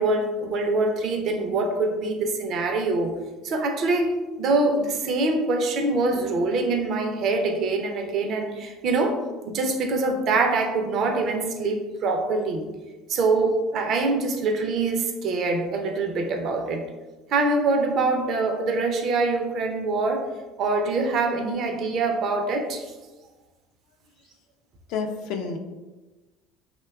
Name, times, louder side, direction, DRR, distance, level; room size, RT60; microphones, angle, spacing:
voice 1, 0.0-3.2 3.4-12.7 13.1-16.8 17.3-20.3 20.6-22.9, right 3 dB, 55° right, 4 dB, 0.4 m, -24 dB
voice 2, 24.9-25.6, left 5 dB, 65° left, 4 dB, 0.3 m, -29 dB
2.8 x 2.1 x 2.2 m, 1.2 s
hypercardioid pair, 75°, 0 cm